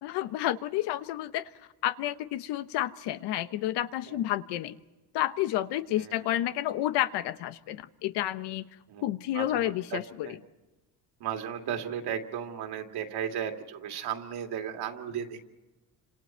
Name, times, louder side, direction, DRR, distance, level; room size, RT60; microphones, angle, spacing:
voice 1, 0.0-1.5 1.8-4.8 5.1-8.7 9.0-10.4, left 13 dB, 90° left, 13 dB, 1.1 m, -30 dB
voice 2, 5.9-6.3 8.9-9.1 9.3-10.4 11.2-15.4, right 9 dB, 70° right, 4 dB, 2.6 m, -35 dB
30.0 x 27.0 x 4.5 m, 1.1 s
cardioid pair, 145°, 40 cm